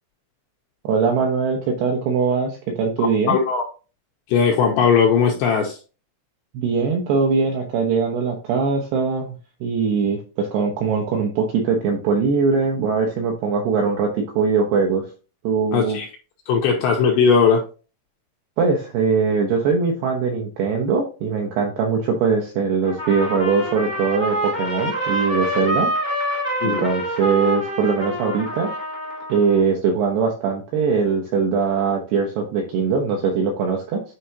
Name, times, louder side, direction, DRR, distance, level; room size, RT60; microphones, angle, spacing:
voice 1, 0.8-3.4 6.5-9.4 9.6-15.0 15.4-16.0 18.6-25.9 26.2-26.3 26.6-28.7 29.3-34.0, right 5 dB, 75° right, 1 dB, 2.4 m, -21 dB
voice 2, 3.3-3.6 4.3-5.8 15.7-16.1 16.5-17.6 26.6-26.9, left 6 dB, 85° left, 1 dB, 2.5 m, -18 dB
Trumpet, 22.8-29.6, right 1 dB, 55° right, 0.5 m, -26 dB
9.9 x 4.5 x 2.9 m, 0.35 s
omnidirectional pair, 5.9 m